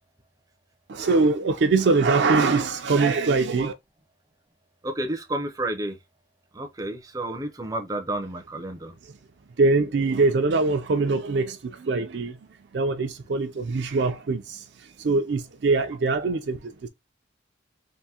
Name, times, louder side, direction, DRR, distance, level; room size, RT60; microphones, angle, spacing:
voice 1, 0.9-3.7 9.6-12.4 12.7-14.6 15.0-16.9, right 3 dB, 65° right, 0.4 m, -23 dB
voice 2, 4.8-6.0 6.5-8.9, right 1 dB, 20° right, 0.5 m, -31 dB
3.6 x 2.6 x 2.8 m
head